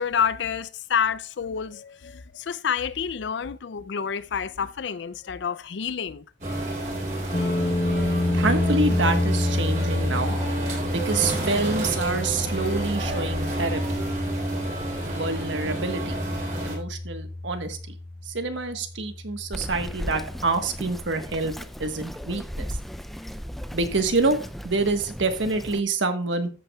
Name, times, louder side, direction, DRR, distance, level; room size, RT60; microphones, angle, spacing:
voice 1, 0.0-6.2, left 7 dB, 70° left, 0.5 m, -28 dB
sound 1, 6.4-16.8, right 1 dB, 45° right, 4.1 m, -30 dB
sound 2, 7.3-21.4, left 1 dB, 35° left, 0.8 m, -29 dB
voice 2, 8.3-10.3 10.9-14.0 15.0-16.2 16.6-18.0 18.3-21.5 21.8-22.8 23.7-24.4 24.6-26.5, right 3 dB, 80° right, 1.3 m, -27 dB
Bird vocalization bird call bird song, 19.5-25.8, equal, ahead, 0.4 m, -36 dB
13.5 x 8.2 x 2.3 m
head